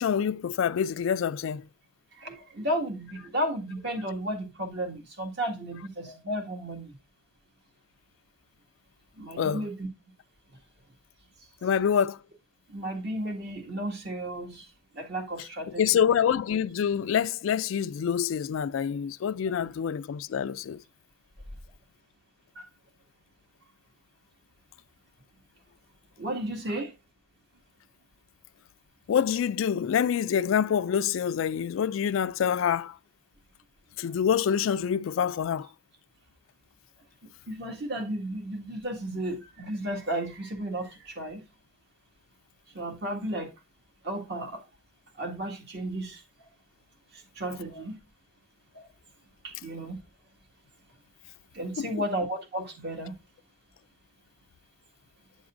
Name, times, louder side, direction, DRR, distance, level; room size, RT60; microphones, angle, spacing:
voice 1, 0.0-1.7 9.4-9.7 11.6-12.2 15.8-20.8 29.1-33.0 34.0-35.7 51.8-51.9, left 8 dB, 75° left, 0.3 m, -26 dB
voice 2, 2.2-6.9 9.2-9.9 12.7-14.6 14.9-16.0 22.5-22.7 26.2-26.9 37.5-41.4 42.7-43.5 44.0-44.6 45.2-46.2 47.3-47.9 49.4-50.0 51.5-53.1, right 1 dB, 55° right, 1.8 m, -33 dB
8.5 x 7.1 x 2.5 m
head